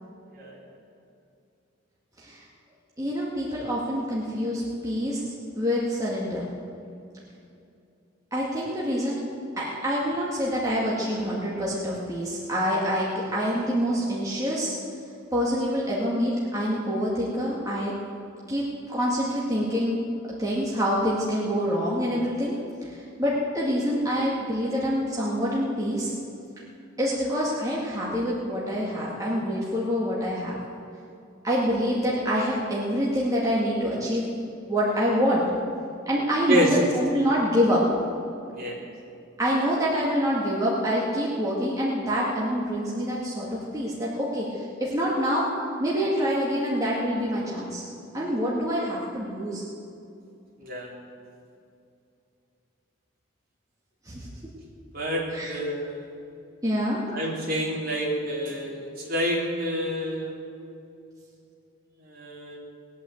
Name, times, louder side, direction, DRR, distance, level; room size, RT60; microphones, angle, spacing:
voice 1, 3.0-5.2 5.6-6.5 8.3-9.2 9.6-14.8 15.3-17.9 18.5-20.1 20.4-22.5 23.2-26.1 27.0-30.6 31.4-34.3 34.7-35.4 36.1-37.9 39.4-45.5 45.8-47.8 48.1-49.6 54.1-54.3 55.3-55.5 56.6-57.0, equal, 15° right, -6 dB, 2.1 m, -26 dB
voice 2, 50.6-50.9 54.9-56.0 57.1-60.4 62.1-62.6, equal, 45° right, -3 dB, 3.7 m, -28 dB
20.0 x 8.9 x 7.9 m, 2.6 s
head